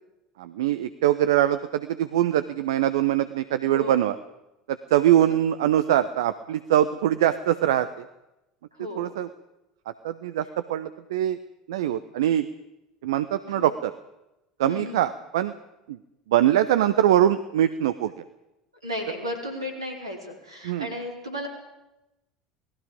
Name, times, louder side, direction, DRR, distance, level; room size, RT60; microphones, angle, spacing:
voice 1, 0.4-4.2 4.7-8.1 9.0-9.3 9.9-11.4 11.7-12.5 13.0-13.9 14.6-15.6 15.9-16.0 16.3-18.2 20.6-20.9, right 12 dB, 65° right, 13 dB, 0.8 m, -23 dB
voice 2, 3.6-4.0 5.2-5.3 8.7-9.1 13.4-13.7 14.6-15.0 18.8-21.5, left 1 dB, 85° right, 2 dB, 4.5 m, -34 dB
27.5 x 19.5 x 5.2 m, 0.93 s
figure-of-eight pair, 70°, 3 cm